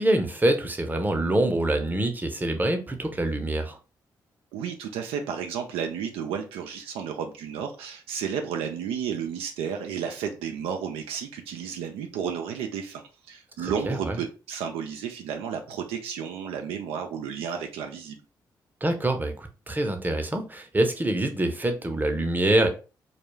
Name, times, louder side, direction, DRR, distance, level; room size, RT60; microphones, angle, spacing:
voice 1, 0.0-3.8 13.6-14.2 18.8-22.7, right 1 dB, 20° right, 0.7 m, -25 dB
voice 2, 4.5-13.0 13.3-18.2, right 7 dB, 80° right, 0.4 m, -32 dB
2.3 x 2.2 x 3.0 m
hypercardioid pair, 45°, 10 cm